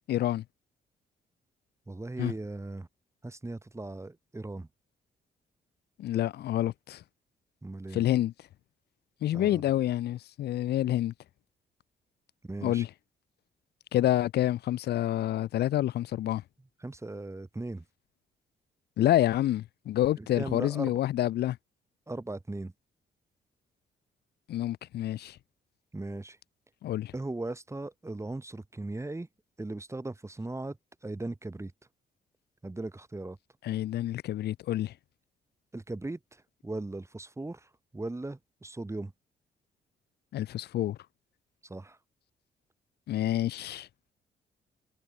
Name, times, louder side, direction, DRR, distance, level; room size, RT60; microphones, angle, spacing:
voice 1, 0.1-0.4 2.2-2.3 6.0-7.0 7.9-8.3 9.2-11.1 12.6-12.9 13.9-16.4 19.0-21.6 24.5-25.4 26.8-27.1 33.6-34.9 40.3-41.0 43.1-43.9, left 13 dB, 70° left, 0.6 m, -28 dB
voice 2, 1.9-2.9 3.2-4.7 7.6-8.1 9.3-9.6 12.4-12.8 16.8-17.8 20.2-21.0 22.1-22.7 25.9-26.4 27.1-29.3 29.6-30.8 31.0-31.7 32.6-33.4 35.7-39.1 41.6-42.0, right 2 dB, 15° right, 6.6 m, -38 dB
cardioid pair, 90°, 17 cm